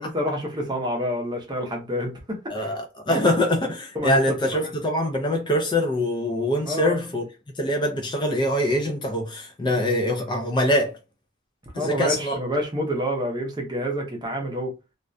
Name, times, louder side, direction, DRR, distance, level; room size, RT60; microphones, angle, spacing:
voice 1, 0.0-2.1 2.6-2.7 3.1-3.3 3.9-4.2 6.7-7.0 11.7-14.7, equal, 20° right, 0.6 m, -27 dB
voice 2, 2.5-7.3 7.6-11.0 11.7-12.4, left 1 dB, 25° left, 0.4 m, -24 dB
2.3 x 2.1 x 2.5 m
head